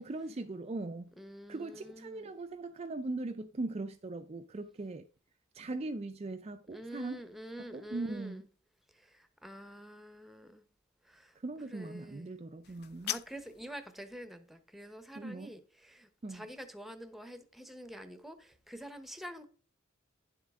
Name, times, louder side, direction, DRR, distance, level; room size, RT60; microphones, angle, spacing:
voice 1, 0.0-1.1 1.5-5.0 5.5-7.2 7.6-8.4 11.4-13.1 15.2-15.5 16.2-16.5, right 2 dB, 30° right, 0.4 m, -40 dB
voice 2, 1.2-2.3 6.7-8.4 8.9-10.6 11.0-11.4 11.7-12.3 13.0-19.5, equal, ahead, 0.9 m, -47 dB
sound 1, 12.6-13.6, left 13 dB, 50° left, 0.4 m, -39 dB
10.5 x 7.4 x 3.6 m
head